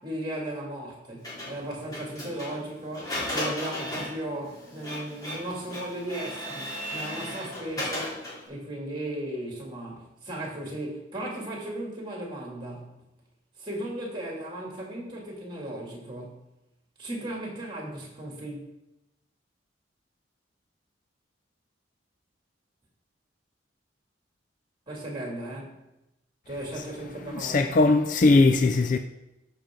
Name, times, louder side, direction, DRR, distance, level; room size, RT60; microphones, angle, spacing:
voice 1, 0.0-8.2 8.5-13.0 13.6-16.4 17.0-18.6 24.9-25.8 26.5-27.8, right 1 dB, 25° right, 2.6 m, -36 dB
Printer, 1.2-8.5, left 1 dB, 20° left, 3.3 m, -36 dB
voice 2, 27.3-29.0, left 3 dB, 40° left, 0.4 m, -20 dB
14.0 x 5.8 x 3.8 m
head